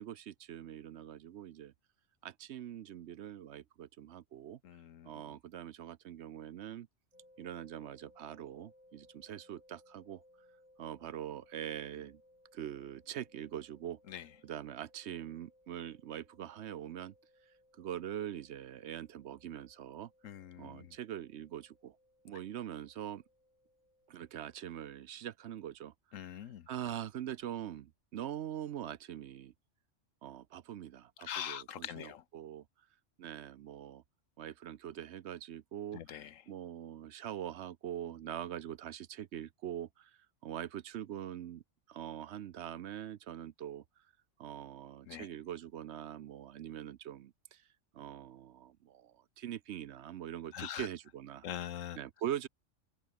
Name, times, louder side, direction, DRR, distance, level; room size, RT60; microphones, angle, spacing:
voice 1, 0.0-1.7 2.2-4.6 5.0-6.9 7.4-10.2 10.8-12.2 12.5-17.1 17.8-20.1 20.6-22.0 22.2-23.2 24.1-26.4 26.7-29.5 30.2-32.6 33.2-34.0 34.4-41.6 41.9-43.8 44.4-47.6 47.9-51.5 52.0-52.5, right 10 dB, 65° right, 0.9 m, -43 dB
voice 2, 4.6-5.1 14.1-14.3 20.2-20.9 26.1-26.7 31.2-32.2 35.9-36.3 45.1-45.3 50.5-50.9 51.4-52.0, left 10 dB, 90° left, 1.3 m, -43 dB
sound 1, 7.1-24.9, left 1 dB, 25° left, 5.6 m, -66 dB
omnidirectional pair, 1.3 m